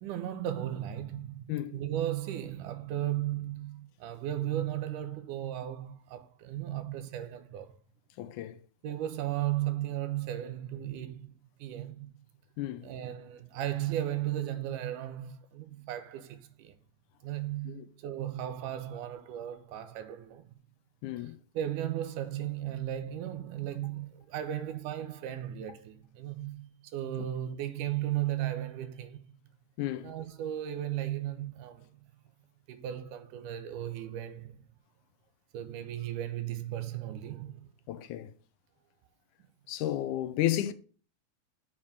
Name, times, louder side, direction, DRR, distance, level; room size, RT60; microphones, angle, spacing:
voice 1, 0.0-7.7 8.8-12.1 12.8-16.7 17.2-20.5 21.2-29.2 30.0-31.9 32.7-34.6 35.5-37.7, right 12 dB, 85° right, 2.5 m, -35 dB
voice 2, 8.2-8.6 12.6-12.9 17.7-17.9 21.0-21.4 29.8-30.1 37.9-38.3 39.7-40.7, left 13 dB, 80° left, 2.2 m, -32 dB
7.2 x 4.9 x 6.6 m
omnidirectional pair, 3.6 m